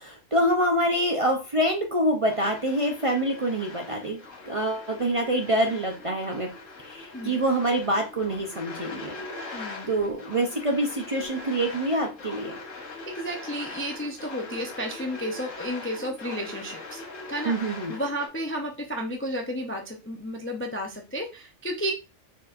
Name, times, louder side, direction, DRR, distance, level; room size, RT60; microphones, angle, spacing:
voice 1, 0.0-4.2 4.4-6.5 6.8-9.1 9.9-12.6 17.4-18.0, right 1 dB, 35° right, 2 dB, 0.6 m, -26 dB
sound 1, 2.3-18.3, left 3 dB, 80° left, 1.5 m, -41 dB
voice 2, 9.5-9.9 13.1-17.0 17.3-17.5 17.9-21.9, equal, 15° left, 2 dB, 0.4 m, -32 dB
4.6 x 4.1 x 2.5 m, 0.29 s
omnidirectional pair, 1.3 m